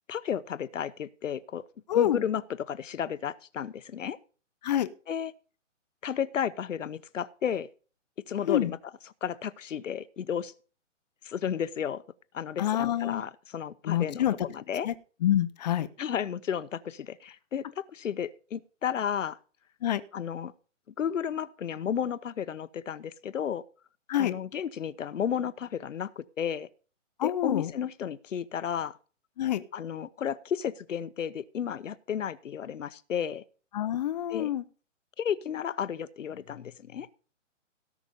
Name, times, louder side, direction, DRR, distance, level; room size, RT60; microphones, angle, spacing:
voice 1, 0.1-1.6 1.9-2.4 2.7-4.2 5.1-5.3 6.0-7.7 8.3-8.8 9.2-10.5 11.2-12.0 12.3-14.9 16.0-19.4 20.1-20.5 21.0-23.6 24.2-26.7 27.2-29.0 29.7-33.4 34.3-34.5 35.2-37.1, left 8 dB, 75° left, 16 dB, 1.0 m, -33 dB
voice 2, 1.9-2.2 4.6-4.9 8.5-8.7 12.6-13.2 13.8-14.3 14.8-14.9 15.2-15.9 19.8-20.0 24.1-24.3 27.2-27.7 29.4-29.6 33.7-34.6, left 11 dB, 35° left, 14 dB, 0.8 m, -26 dB
17.5 x 6.1 x 5.4 m, 0.39 s
hypercardioid pair, 150°, 38 cm